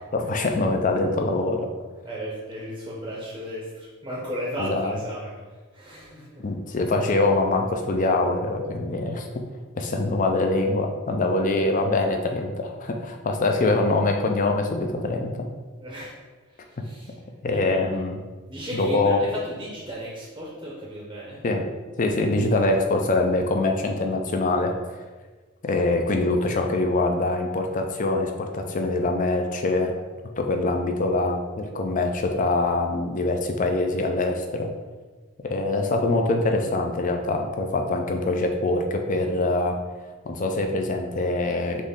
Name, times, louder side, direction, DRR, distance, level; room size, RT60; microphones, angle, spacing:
voice 1, 0.1-1.7 4.6-5.0 6.4-9.3 9.8-15.5 17.4-18.2 18.7-19.2 21.4-21.6 22.0-25.0 25.6-29.9 30.4-34.7 35.4-39.8 40.3-41.8, left 2 dB, 35° left, 4 dB, 0.4 m, -24 dB
voice 2, 2.0-6.5 15.8-17.2 17.5-17.8 18.5-21.4, equal, 20° right, -4 dB, 0.7 m, -35 dB
4.0 x 3.1 x 3.6 m, 1.3 s
head